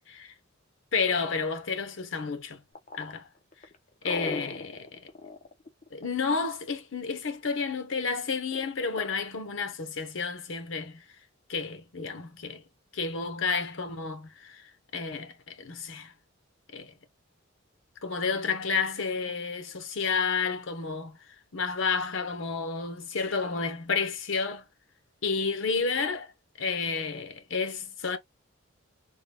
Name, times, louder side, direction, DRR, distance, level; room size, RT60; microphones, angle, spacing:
voice 1, 0.9-2.6 2.9-3.3 4.0-5.1 5.9-11.0 11.5-12.6 12.9-16.1 16.7-16.9 18.0-21.1 21.5-24.6 25.2-26.3 26.6-28.2, left 5 dB, 65° left, 0.8 m, -31 dB
sound 1, 2.8-6.4 8.5-9.1, left 3 dB, 35° left, 0.6 m, -38 dB
3.7 x 2.2 x 3.4 m
head